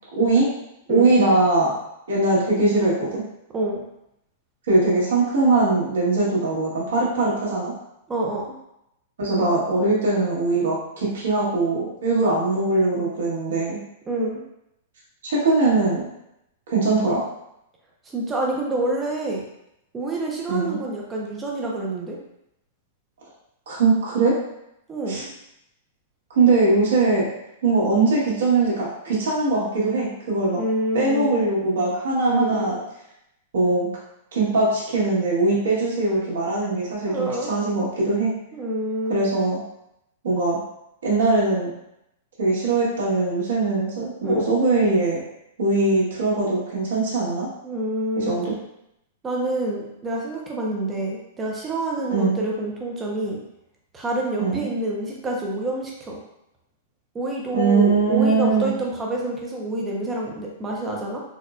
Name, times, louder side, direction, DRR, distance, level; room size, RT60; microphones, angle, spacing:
voice 1, 0.1-0.5 0.9-1.7 2.1-3.2 4.7-7.7 9.2-13.8 15.2-16.0 16.7-17.2 20.5-20.8 23.7-24.4 25.1-25.2 26.3-27.3 27.6-30.6 30.9-32.8 33.5-33.9 34.3-38.3 39.1-39.6 40.2-40.6 41.0-41.7 42.4-45.2 45.6-47.5 48.2-48.5 52.1-52.4 54.4-54.7 57.5-58.7, right 3 dB, 85° right, -6 dB, 1.3 m, -21 dB
voice 2, 8.1-8.4 14.1-14.4 18.1-19.4 19.9-22.2 24.9-25.3 30.6-31.4 32.3-32.7 37.1-37.5 38.5-39.2 44.2-44.5 47.6-48.4 49.2-53.4 53.9-56.2 57.1-61.2, right 1 dB, 10° right, -1 dB, 0.4 m, -27 dB
4.1 x 2.1 x 2.4 m, 0.82 s
supercardioid pair, 170°, 0 cm